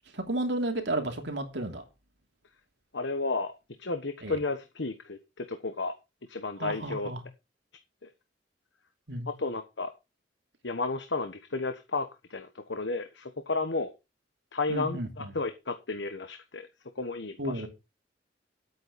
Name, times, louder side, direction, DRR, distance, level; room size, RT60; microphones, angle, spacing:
voice 1, 0.1-1.8 4.2-4.4 6.6-7.2 9.1-9.3 14.7-15.3 17.4-17.7, right 1 dB, 65° right, 2.9 m, -32 dB
voice 2, 2.9-3.5 3.8-6.0 6.3-7.1 8.0-8.1 9.3-9.9 10.6-13.9 14.5-16.7 16.9-17.7, left 3 dB, 70° left, 1.3 m, -33 dB
11.0 x 8.8 x 5.2 m
head